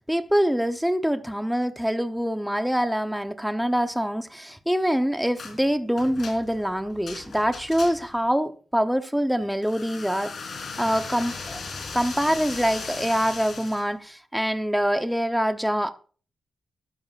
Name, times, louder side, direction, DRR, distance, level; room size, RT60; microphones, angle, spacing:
voice 1, 0.0-11.6 11.9-15.9, equal, ahead, 0.8 m, -25 dB
sound 1, 5.4-5.6 6.0-8.2 9.6-13.9, left 4 dB, 65° left, 3.7 m, -37 dB
13.0 x 11.5 x 2.5 m
cardioid pair, 75°, 0 cm